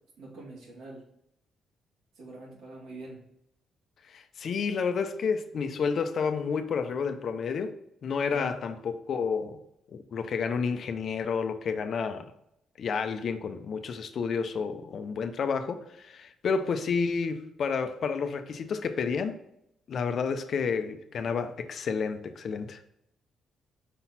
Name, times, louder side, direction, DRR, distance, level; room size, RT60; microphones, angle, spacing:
voice 1, 0.2-1.1 2.2-3.2 6.9-7.0 8.3-8.5, right 2 dB, 80° right, 2.3 m, -44 dB
voice 2, 4.1-9.6 9.9-12.3 12.8-19.4 19.9-22.8, left 5 dB, 60° left, 0.6 m, -30 dB
5.5 x 4.1 x 4.2 m
cardioid pair, 90°, 0 cm